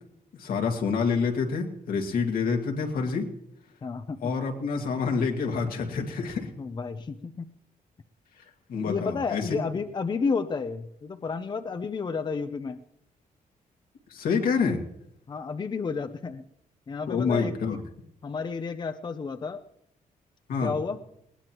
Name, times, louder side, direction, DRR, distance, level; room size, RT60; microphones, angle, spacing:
voice 1, 0.4-3.3 4.2-6.5 8.7-9.5 14.1-14.8 17.1-17.8 20.5-20.7, left 5 dB, 80° left, 2 dB, 2.2 m, -27 dB
voice 2, 3.8-4.3 6.6-7.5 8.9-12.8 15.3-16.4 16.9-17.8 18.2-19.6 20.6-21.0, left 5 dB, 30° left, 9 dB, 0.7 m, -31 dB
19.5 x 19.0 x 3.0 m, 0.74 s
cardioid pair, 135°, 15 cm